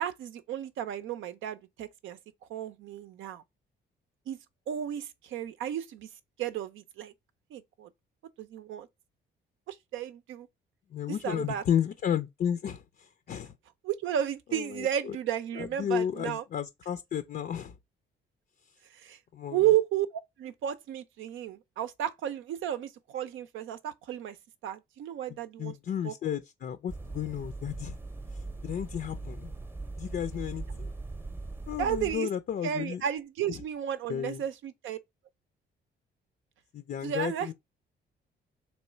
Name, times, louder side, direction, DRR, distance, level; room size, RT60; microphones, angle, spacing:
voice 1, 0.0-2.2 2.5-3.4 4.3-4.4 4.7-6.1 6.4-7.1 7.5-7.9 8.4-8.9 9.7-10.5 11.1-11.6 13.8-16.4 18.9-19.2 19.5-24.4 24.6-25.7 26.0-26.1 31.8-32.3 32.6-35.0 37.0-37.5, right 10 dB, 80° right, 0.6 m, -33 dB
voice 2, 10.9-13.5 14.5-15.2 15.6-17.7 19.3-19.6 25.6-28.0 28.3-29.5 30.0-30.9 31.7-33.0 34.1-34.4 36.7-37.5, left 9 dB, 50° left, 0.5 m, -33 dB
sound 1, 26.9-32.2, right 3 dB, 10° right, 0.7 m, -40 dB
3.1 x 3.1 x 4.3 m
cardioid pair, 90°, 20 cm